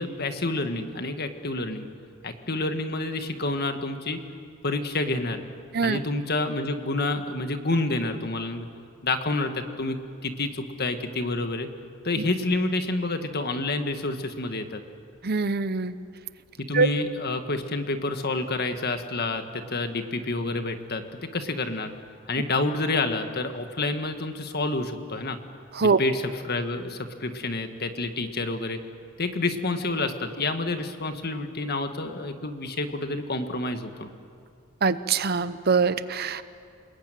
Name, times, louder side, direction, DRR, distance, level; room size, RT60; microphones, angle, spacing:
voice 1, 0.0-1.9 2.2-4.2 4.6-5.4 5.8-8.7 9.0-10.0 10.2-11.7 12.0-14.8 16.6-21.0 21.3-21.9 22.3-25.4 25.8-28.8 29.2-34.1, left 2 dB, 50° left, 7 dB, 1.7 m, -28 dB
voice 2, 15.2-15.9 16.7-16.9 25.7-26.0 34.8-36.4, right 4 dB, 50° right, 13 dB, 0.8 m, -23 dB
28.5 x 20.5 x 9.2 m, 2.3 s
head